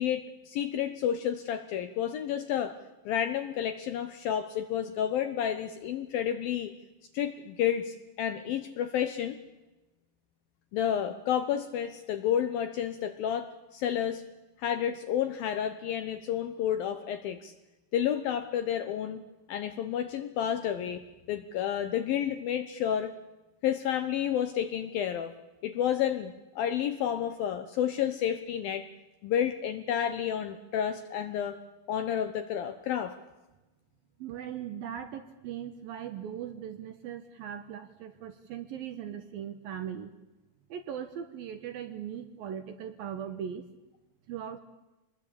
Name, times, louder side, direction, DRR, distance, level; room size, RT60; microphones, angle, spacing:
voice 1, 0.0-2.8 3.1-6.7 7.1-9.4 10.7-14.2 14.6-17.5 17.9-19.2 19.5-21.0 21.3-23.1 23.6-25.3 25.6-28.9 29.2-31.6 31.9-33.2, left 9 dB, 70° left, 9 dB, 2.3 m, -30 dB
voice 2, 34.2-40.1 40.7-43.7 44.3-44.6, right 9 dB, 70° right, 9 dB, 2.5 m, -39 dB
25.5 x 20.5 x 8.7 m, 1.1 s
omnidirectional pair, 5.3 m